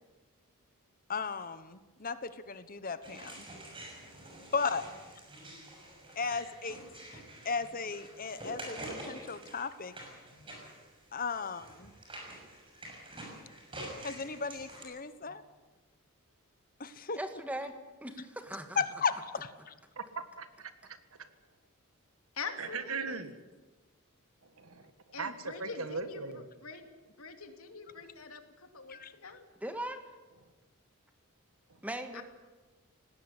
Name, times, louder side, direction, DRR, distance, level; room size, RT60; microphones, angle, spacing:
voice 1, 1.1-3.5 4.5-4.8 6.2-6.8 7.1-9.9 11.1-11.9 14.0-15.4 16.8-17.2 18.8-19.7 28.9-29.1, left 5 dB, 40° left, 12 dB, 1.2 m, -35 dB
sound 1, 3.0-14.8, right 1 dB, 25° right, 6.5 m, -47 dB
voice 2, 17.1-17.7 18.0-18.2 18.5-18.8 29.6-30.0 31.8-32.2, right 1 dB, 5° right, 7 dB, 1.8 m, -38 dB
voice 3, 20.0-21.3 22.6-23.3 24.4-26.4 31.7-31.8, right 4 dB, 75° right, 10 dB, 1.7 m, -40 dB
voice 4, 22.3-23.3 25.1-29.5 32.1-32.2, left 5 dB, 80° left, 6 dB, 2.8 m, -45 dB
19.0 x 17.5 x 9.8 m, 1.2 s
head